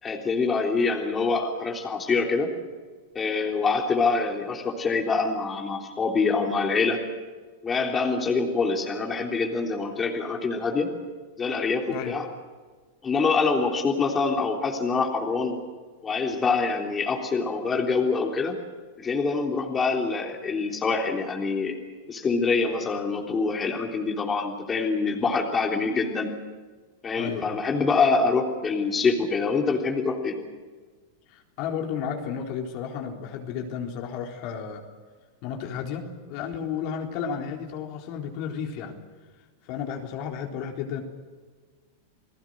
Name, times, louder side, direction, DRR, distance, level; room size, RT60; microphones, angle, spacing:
voice 1, 0.0-2.5 3.2-7.0 7.6-10.9 11.4-12.3 13.0-15.6 16.0-18.6 19.0-21.8 22.1-26.3 27.0-30.4, left 4 dB, 20° left, 1 dB, 3.5 m, -25 dB
voice 2, 27.2-27.6 31.3-34.8 35.4-39.0 39.6-41.0, left 7 dB, 55° left, 2 dB, 4.0 m, -33 dB
29.5 x 18.0 x 6.5 m, 1.4 s
hypercardioid pair, 120°, 0 cm